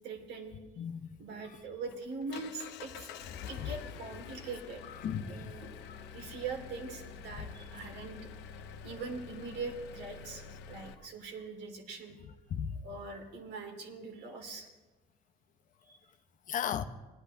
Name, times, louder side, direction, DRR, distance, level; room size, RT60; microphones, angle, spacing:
voice 1, 0.0-0.6 1.2-3.1 3.5-4.8 5.3-5.7 6.1-8.2 8.8-12.2 12.8-14.7 15.8-16.0, right 4 dB, 80° right, 2.0 m, -42 dB
voice 2, 0.8-1.1 3.5-3.7 4.9-5.5 5.9-6.0 7.4-7.5 8.0-8.1 12.2-12.7 16.5-16.8, left 8 dB, 50° left, 0.6 m, -36 dB
Engine, 1.4-10.9, left 6 dB, 85° left, 0.7 m, -48 dB
18.5 x 10.5 x 2.7 m
cardioid pair, 110°, 17 cm